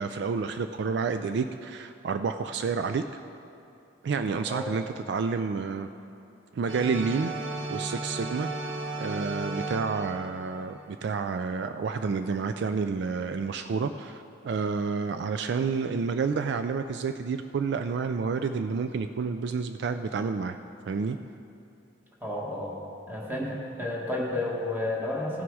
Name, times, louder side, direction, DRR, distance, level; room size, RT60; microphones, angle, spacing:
voice 1, 0.0-3.2 4.0-5.9 6.5-7.3 7.7-8.5 9.0-20.6 20.9-21.2, right 5 dB, 65° right, 9 dB, 0.3 m, -29 dB
sound 1, 6.7-11.2, right 2 dB, 80° right, 1.2 m, -35 dB
voice 2, 22.2-22.8 23.1-25.4, left 1 dB, 10° right, -3 dB, 1.5 m, -31 dB
16.0 x 6.1 x 4.7 m, 2.6 s
head